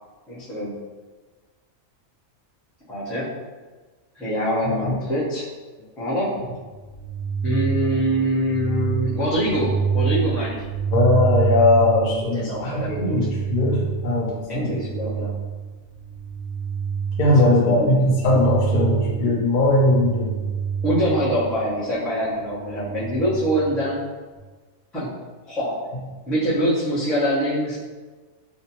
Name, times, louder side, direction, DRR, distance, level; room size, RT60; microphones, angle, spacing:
voice 1, 0.3-0.8 2.9-3.3 4.1-5.5 6.0-6.3 7.4-10.6 12.3-13.3 14.5-15.3 17.3-17.9 20.8-24.0 24.9-25.1 25.5-25.7 26.3-27.8, equal, ahead, -11 dB, 0.3 m, -24 dB
voice 2, 4.6-5.0 10.9-14.7 17.2-20.3, left 2 dB, 80° left, -2 dB, 0.4 m, -19 dB
sound 1, 6.7-21.8 22.2-23.9 24.3-24.4, right 7 dB, 65° right, 0.5 m, -28 dB
2.5 x 2.1 x 2.8 m, 1.3 s
omnidirectional pair, 1.5 m